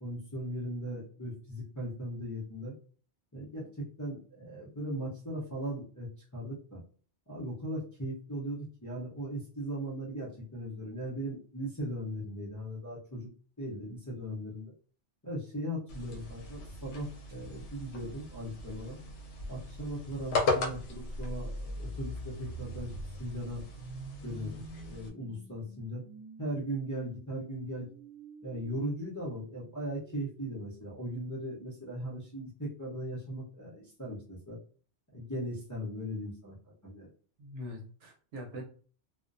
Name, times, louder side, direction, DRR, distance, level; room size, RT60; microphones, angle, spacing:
voice 1, 0.0-2.7 3.3-6.8 7.3-13.3 13.6-14.7 15.2-19.0 19.5-22.9 23.2-23.6 24.2-26.0 26.4-27.9 28.4-34.6 35.1-36.5 36.8-37.1, right 1 dB, 20° left, -7 dB, 0.5 m, -38 dB
sound 1, 15.9-25.1, left 3 dB, 80° left, 0.9 m, -38 dB
sound 2, 21.0-30.9, equal, 30° right, 1.0 m, -46 dB
voice 2, 37.4-38.6, left 1 dB, 75° right, 1 dB, 1.0 m, -43 dB
2.4 x 2.1 x 2.5 m, 0.42 s
omnidirectional pair, 1.2 m